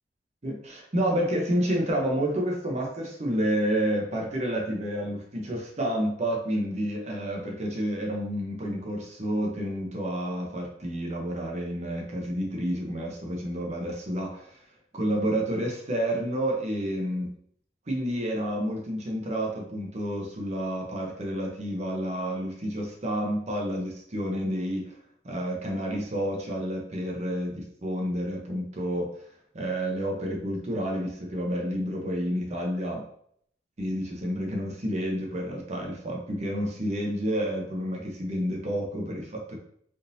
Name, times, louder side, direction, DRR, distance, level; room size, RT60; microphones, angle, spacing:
voice 1, 0.4-14.6 14.9-17.3 17.9-25.0 25.2-29.1 29.5-33.0 33.8-39.6, equal, 40° right, 0 dB, 0.8 m, -29 dB
3.6 x 2.7 x 2.7 m, 0.65 s
head